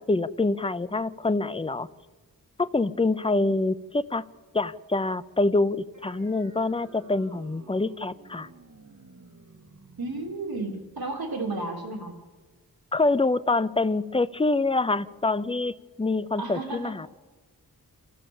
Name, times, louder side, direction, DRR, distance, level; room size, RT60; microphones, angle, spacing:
voice 1, 0.0-1.9 2.6-4.2 4.5-8.5 12.9-17.1, left 2 dB, 15° left, 15 dB, 0.5 m, -26 dB
sound 1, 5.9-12.9, right 3 dB, 50° right, 1.8 m, -53 dB
voice 2, 10.0-12.1 16.3-16.9, right 2 dB, 75° right, 2 dB, 3.2 m, -33 dB
27.0 x 15.0 x 7.1 m, 1.3 s
wide cardioid pair, 100°, 36 cm